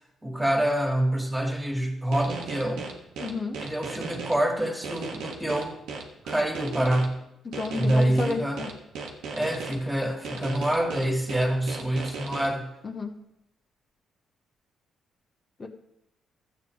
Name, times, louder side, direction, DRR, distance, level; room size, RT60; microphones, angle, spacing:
voice 1, 0.2-2.9 3.6-5.7 6.2-7.2 7.7-8.6 9.3-12.7, right 1 dB, 10° right, 1 dB, 2.0 m, -26 dB
sound 1, 2.1-4.3 4.8-7.1 7.5-9.7 10.2-12.5, right 5 dB, 85° right, 1.4 m, -36 dB
voice 2, 3.2-3.6 7.4-8.7 12.8-13.1 15.6-15.7, left 3 dB, 35° left, 0 dB, 1.1 m, -31 dB
13.5 x 8.1 x 3.2 m, 0.84 s
cardioid pair, 90°, 0 cm